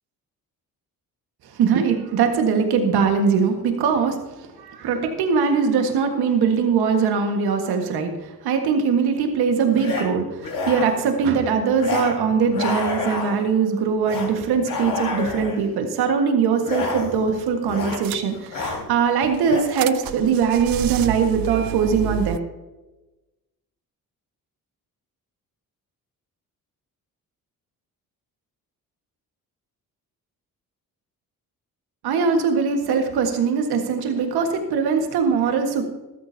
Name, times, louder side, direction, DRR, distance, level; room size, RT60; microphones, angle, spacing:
voice 1, 1.5-22.4 32.0-35.8, right 6 dB, 90° right, 4 dB, 1.7 m, -21 dB
sound 1, 7.8-7.9 9.7-10.0 10.4-11.1 11.8-12.1 12.4-13.5 14.0-14.3 14.6-15.6 16.6-17.3 17.6-18.1 18.3-18.8 19.4-19.6, left 4 dB, 65° left, 4.7 m, -29 dB
sound 2, 17.0-17.2 17.5-17.6 17.9-18.7 19.2-22.4, right 15 dB, 65° right, 0.5 m, -30 dB
14.0 x 13.5 x 2.8 m, 1.1 s
cardioid pair, 75°, 37 cm